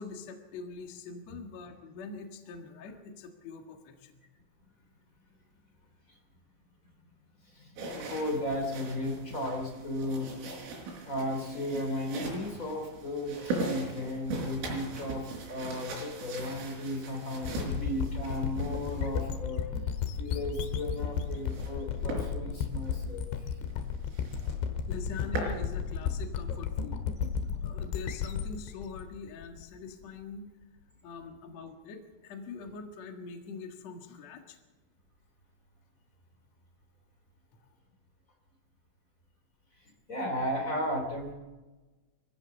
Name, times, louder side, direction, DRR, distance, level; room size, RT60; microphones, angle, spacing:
voice 1, 0.0-4.2 24.9-27.0 27.6-30.5 31.0-34.6, left 4 dB, 60° left, 3 dB, 1.9 m, -43 dB
voice 2, 7.4-10.3 11.0-19.9 20.2-23.6 39.8-41.3, left 1 dB, 20° left, 3 dB, 2.4 m, -35 dB
sound 1, 7.8-19.4 20.7-21.8 22.1-22.3 22.7-22.9 23.3-23.4 23.7-23.8 24.1-24.6 24.9-25.6, right 3 dB, 75° right, 7.1 m, -40 dB
sound 2, 17.4-30.0, left 7 dB, 75° left, 3.5 m, -34 dB
23.5 x 15.5 x 7.0 m, 1.2 s
omnidirectional pair, 5.8 m